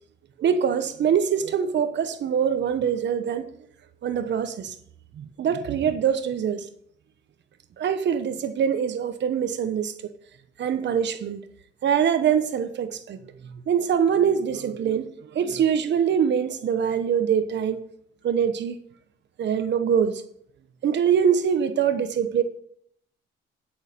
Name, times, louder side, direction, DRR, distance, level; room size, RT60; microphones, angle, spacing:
voice 1, 0.4-3.5 4.0-4.7 5.2-6.7 7.8-10.1 10.6-11.4 11.8-13.2 13.7-17.8 18.2-18.8 19.4-20.2 20.8-22.4, right 8 dB, 65° right, 1.1 m, -24 dB
11.0 x 6.6 x 5.3 m
cardioid pair, 90°, 20 cm